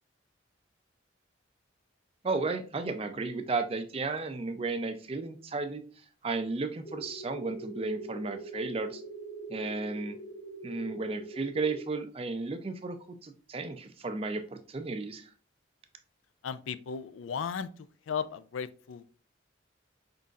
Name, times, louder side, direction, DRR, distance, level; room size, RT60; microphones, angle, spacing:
voice 1, 2.2-5.8 6.2-9.0 9.5-10.2 10.6-15.3, right 3 dB, 30° right, 9 dB, 0.4 m, -34 dB
sound 1, 6.8-11.8, right 2 dB, 70° left, 1.8 m, -43 dB
voice 2, 16.4-17.7 18.1-19.2, left 6 dB, 90° left, 14 dB, 0.4 m, -35 dB
5.4 x 3.8 x 2.4 m, 0.41 s
head